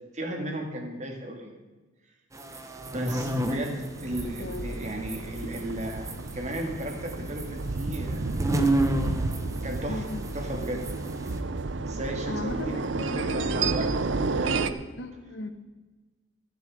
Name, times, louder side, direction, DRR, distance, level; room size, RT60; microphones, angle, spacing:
voice 1, 0.1-1.5 2.9-8.3 9.6-10.0 10.3-10.9 11.8-12.8 13.0-13.9 14.4-14.8, right 1 dB, 35° right, 3 dB, 2.3 m, -35 dB
sound 1, 2.3-11.4, right 1 dB, 15° right, 1.0 m, -32 dB
sound 2, 3.9-14.7, right 3 dB, 70° right, 0.7 m, -31 dB
voice 2, 9.9-10.2 12.3-13.7 15.0-15.5, left 1 dB, 65° left, 8 dB, 1.4 m, -36 dB
14.5 x 10.5 x 5.0 m, 1.2 s
head